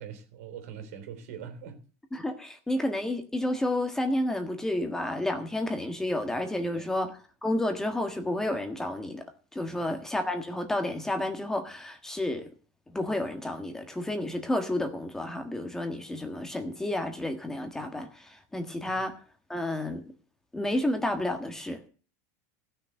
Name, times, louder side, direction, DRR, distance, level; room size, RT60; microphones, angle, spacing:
voice 1, 0.0-1.8 6.6-6.9 9.7-9.8 18.9-19.0, right 8 dB, 75° right, 3.4 m, -43 dB
voice 2, 2.1-9.2 9.5-12.5 12.9-19.1 19.5-20.0 20.5-21.8, left 1 dB, 5° left, 1.5 m, -31 dB
15.5 x 6.5 x 8.0 m
supercardioid pair, 150°, 8 cm